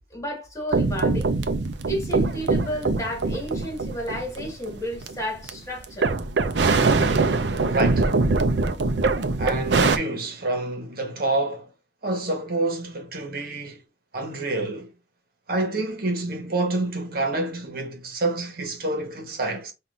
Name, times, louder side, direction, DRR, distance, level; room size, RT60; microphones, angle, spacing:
voice 1, 0.1-1.3 1.9-6.1, equal, 20° left, 1.7 m, -32 dB
sound 1, 0.7-5.5 5.8-10.0, right 3 dB, 80° right, 0.6 m, -23 dB
voice 2, 7.6-8.1 9.4-11.7 12.0-13.8 14.1-14.9 15.5-19.7, right 2 dB, 60° right, 1.2 m, -27 dB
5.8 x 2.6 x 2.5 m
head